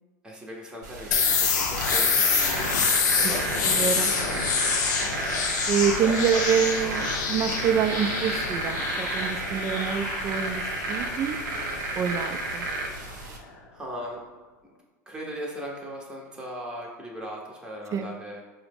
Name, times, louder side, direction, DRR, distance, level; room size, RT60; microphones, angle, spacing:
voice 1, 0.2-2.7 3.1-4.7 6.0-6.4 6.8-7.0 13.7-14.2 15.1-18.4, equal, 10° right, -2 dB, 0.7 m, -38 dB
sound 1, 0.8-13.4, right 2 dB, 85° right, 0.6 m, -32 dB
sound 2, 1.1-12.7, left 5 dB, 80° left, 0.6 m, -27 dB
voice 2, 3.6-4.1 5.7-10.6 10.9-11.4 12.0-12.7 17.9-18.1, right 7 dB, 35° right, 7 dB, 0.3 m, -26 dB
4.6 x 2.0 x 3.3 m, 1.2 s
hypercardioid pair, 95°, 10 cm